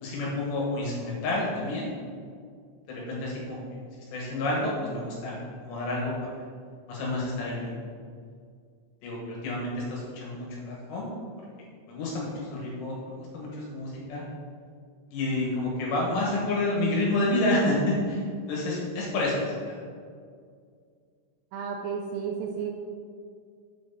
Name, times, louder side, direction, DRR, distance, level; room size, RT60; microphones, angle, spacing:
voice 1, 0.0-1.9 2.9-3.6 4.1-6.3 6.9-7.7 9.0-11.1 11.9-14.2 15.1-18.2 18.5-19.8, left 1 dB, 70° left, -3 dB, 3.1 m, -29 dB
voice 2, 21.5-22.7, right 6 dB, 85° right, 0 dB, 3.2 m, -32 dB
7.9 x 6.1 x 4.0 m, 2.2 s
omnidirectional pair, 5.9 m